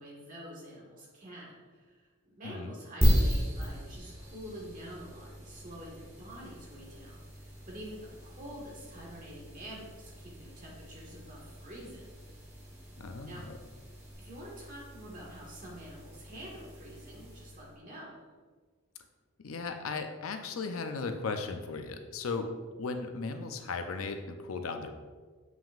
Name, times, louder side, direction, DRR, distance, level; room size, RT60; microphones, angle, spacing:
voice 1, 0.0-12.1 13.2-13.4 14.2-18.2, equal, 40° right, -4 dB, 1.7 m, -47 dB
sound 1, 3.0-17.7, equal, 15° right, 1.6 m, -36 dB
voice 2, 13.0-13.6 19.4-22.5 22.8-25.0, left 4 dB, 85° left, 6 dB, 0.6 m, -36 dB
7.2 x 5.9 x 2.5 m, 1.4 s
head